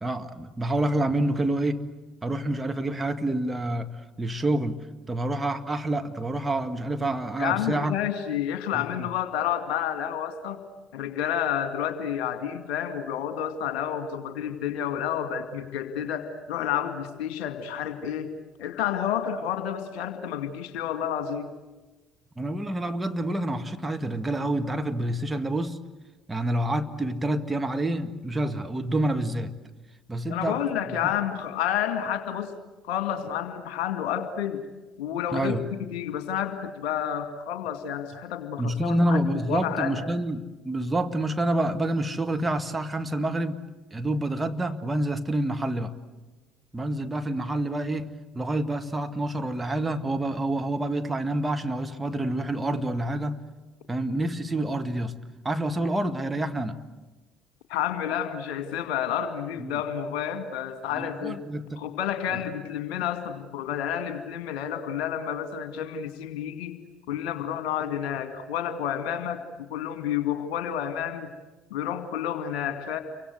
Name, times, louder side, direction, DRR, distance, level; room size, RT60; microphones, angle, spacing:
voice 1, 0.0-1.8 2.2-3.9 4.2-4.8 5.1-7.9 8.7-9.1 22.4-25.8 26.3-29.5 30.1-30.6 35.3-35.6 38.6-43.6 43.9-45.9 46.7-48.1 48.3-53.4 53.9-55.1 55.4-56.8 59.6-59.8 60.9-61.8 62.3-62.4, right 1 dB, 15° right, 1.7 m, -28 dB
voice 2, 7.4-10.6 10.9-18.3 18.6-21.5 30.3-32.5 32.9-34.7 35.0-40.0 57.7-61.4 61.8-66.8 67.1-69.4 69.7-71.3 71.7-73.0, left 9 dB, 60° left, 2.1 m, -30 dB
29.5 x 25.0 x 8.1 m
figure-of-eight pair, 55°, 0 cm